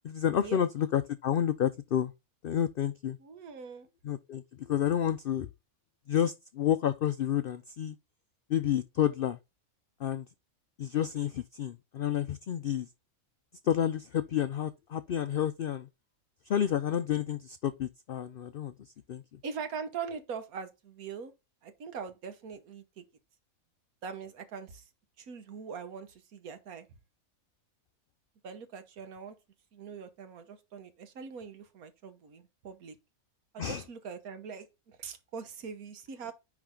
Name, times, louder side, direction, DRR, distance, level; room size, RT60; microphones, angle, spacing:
voice 1, 0.0-2.1 2.4-3.2 4.0-5.5 6.1-8.0 8.5-9.4 10.0-10.2 10.8-12.9 13.6-15.9 16.5-18.7 19.1-19.2 33.6-33.9 36.2-36.3, left 10 dB, 85° left, 0.5 m, -30 dB
voice 2, 3.2-3.9 19.4-21.3 21.6-23.0 24.0-24.9 25.2-26.9 28.4-29.3 29.7-33.0 33.5-36.3, right 6 dB, 80° right, 1.5 m, -42 dB
9.8 x 3.3 x 3.7 m
omnidirectional pair, 1.5 m